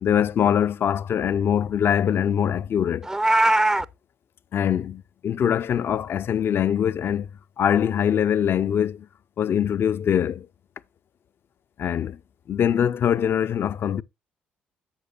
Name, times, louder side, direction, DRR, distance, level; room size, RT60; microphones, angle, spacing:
voice 1, 0.0-3.1 4.5-7.3 7.6-9.1 9.4-10.5 11.8-12.2 12.5-14.0, left 9 dB, 50° left, 0.4 m, -23 dB
Meow, 3.0-3.8, right 2 dB, 10° right, 0.5 m, -20 dB
11.5 x 7.6 x 2.5 m
hypercardioid pair, 45°, 5 cm